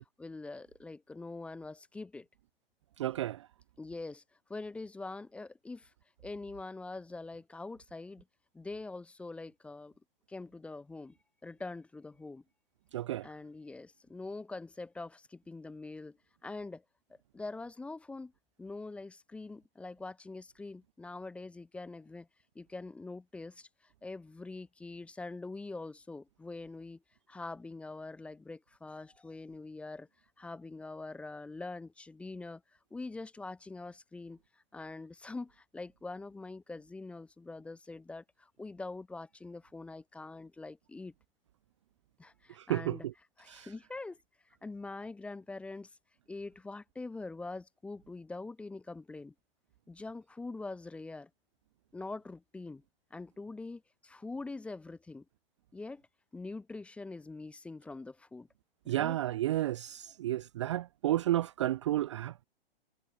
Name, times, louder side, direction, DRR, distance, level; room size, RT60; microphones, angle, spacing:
voice 1, 0.2-2.3 3.8-4.2 4.5-5.9 6.2-8.2 8.5-9.9 10.3-11.2 11.4-12.4 13.2-16.8 17.1-18.3 18.6-22.3 22.5-23.7 24.0-27.0 27.3-30.1 30.4-32.6 32.9-34.4 34.7-41.1 42.2-43.1 43.4-44.2 44.6-45.9 46.3-49.3 49.9-51.3 51.9-52.8 53.1-55.2 55.7-56.0 56.3-58.5 58.8-59.2, left 3 dB, 5° left, 0.7 m, -44 dB
voice 2, 3.0-3.5 12.9-13.3 42.5-43.1 43.5-43.7 58.9-62.5, right 14 dB, 30° right, 0.4 m, -32 dB
figure-of-eight pair, 125°, 30 cm